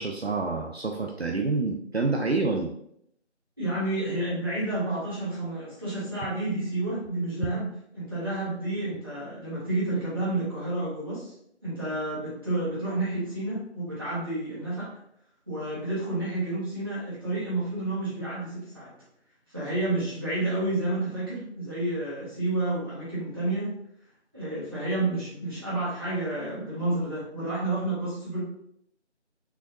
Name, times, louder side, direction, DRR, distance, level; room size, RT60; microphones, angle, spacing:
voice 1, 0.0-2.7, right 3 dB, 60° right, 2 dB, 0.6 m, -27 dB
voice 2, 3.6-7.7 7.9-11.3 11.6-14.9 15.5-18.9 19.5-23.7 24.3-28.4, right 2 dB, 20° right, -12 dB, 1.7 m, -30 dB
6.2 x 3.1 x 2.7 m, 0.73 s
figure-of-eight pair, 175°, 36 cm